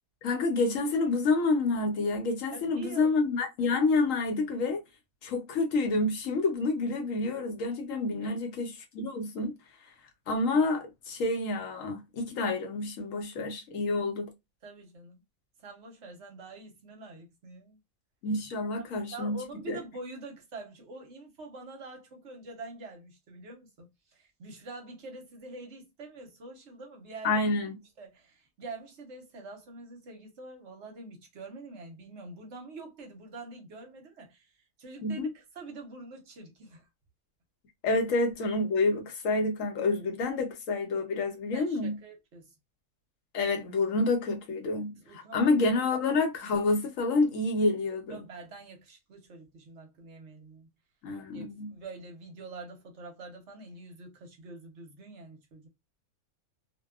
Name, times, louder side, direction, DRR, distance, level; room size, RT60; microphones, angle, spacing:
voice 1, 0.2-4.8 5.2-9.5 10.3-14.3 18.2-19.4 19.7-19.8 27.2-27.7 35.0-35.3 37.8-42.0 43.3-48.2 51.0-51.7, left 3 dB, 65° left, 1.0 m, -28 dB
voice 2, 2.5-3.2 8.1-8.4 14.6-15.2 15.6-17.8 18.6-27.4 28.0-36.9 41.5-42.5 44.9-45.5 46.4-46.5 48.1-50.7 51.3-55.7, right 3 dB, 55° right, 0.9 m, -46 dB
2.7 x 2.2 x 2.2 m
omnidirectional pair, 1.6 m